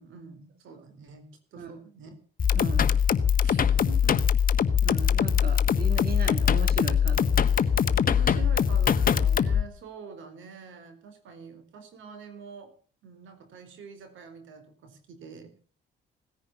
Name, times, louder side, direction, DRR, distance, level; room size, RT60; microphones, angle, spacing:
voice 1, 0.0-2.1 3.4-4.2 8.1-12.7 13.0-15.6, right 5 dB, 80° right, 9 dB, 4.3 m, -45 dB
sound 1, 2.4-9.6, left 7 dB, 45° left, 1.4 m, -22 dB
voice 2, 2.5-3.0 3.5-3.6 4.8-7.7, right 6 dB, 50° right, 8 dB, 2.3 m, -38 dB
18.0 x 10.5 x 7.2 m, 0.41 s
cardioid pair, 90°, 20 cm